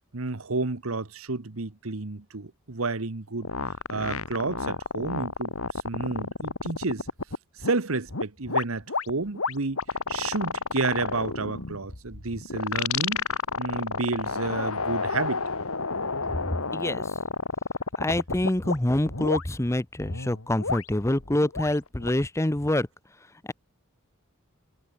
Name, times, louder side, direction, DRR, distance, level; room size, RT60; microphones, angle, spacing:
voice 1, 0.1-3.5 3.9-7.1 7.6-9.8 10.1-13.3 13.6-15.4, right 3 dB, 65° right, 1.2 m, -30 dB
sound 1, 3.4-7.7 8.1-18.8 19.1-19.4 20.0-22.2, left 4 dB, 70° left, 2.1 m, -30 dB
voice 2, 16.7-17.1 18.0-22.9, left 1 dB, 15° left, 0.7 m, -26 dB
head